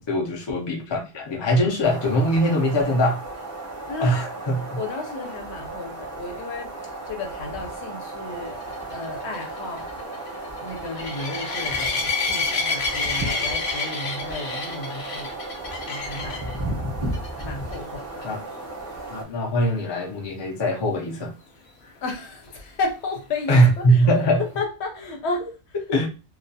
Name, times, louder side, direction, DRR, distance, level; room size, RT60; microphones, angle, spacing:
voice 1, 0.0-3.2 4.0-4.8 18.2-18.4 19.1-21.3 23.5-24.4 25.9-26.1, equal, 35° left, 0.4 m, -21 dB
sound 1, 1.8-19.2, right 2 dB, 20° right, 0.5 m, -34 dB
voice 2, 3.9-4.2 4.8-8.6 8.9-10.0 10.6-15.4 15.9-16.5 17.4-18.2 22.0-24.1 24.4-25.8, left 3 dB, 80° left, 0.9 m, -33 dB
Group-Attack Masked Lapwing, 8.6-16.5 17.1-17.4 17.7-17.8 18.2-18.3 21.9-22.0, left 4 dB, 60° left, 0.8 m, -29 dB
2.3 x 2.2 x 2.6 m
omnidirectional pair, 1.1 m